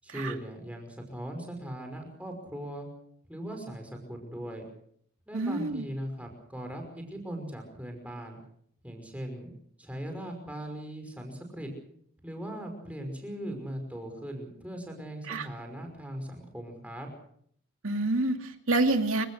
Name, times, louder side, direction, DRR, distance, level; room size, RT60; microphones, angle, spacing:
voice 1, 0.0-2.9 3.3-4.6 5.3-8.4 8.8-9.5 9.8-11.7 12.2-17.1, right 1 dB, 5° right, 3 dB, 5.5 m, -39 dB
voice 2, 5.3-5.8 15.3-15.5 17.8-19.3, right 2 dB, 65° right, 5 dB, 2.5 m, -27 dB
29.0 x 17.0 x 6.4 m, 0.68 s
head